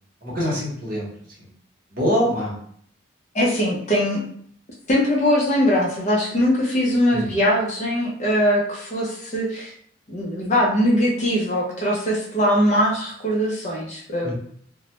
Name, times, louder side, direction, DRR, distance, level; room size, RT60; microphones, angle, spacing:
voice 1, 0.2-1.1 1.4-1.5 1.9-2.5 7.1-7.4 14.2-14.3, equal, 45° right, -4 dB, 0.8 m, -24 dB
voice 2, 3.3-4.2 4.9-9.7 10.1-14.3, equal, 35° left, -3 dB, 0.5 m, -21 dB
2.1 x 2.0 x 2.8 m, 0.62 s
head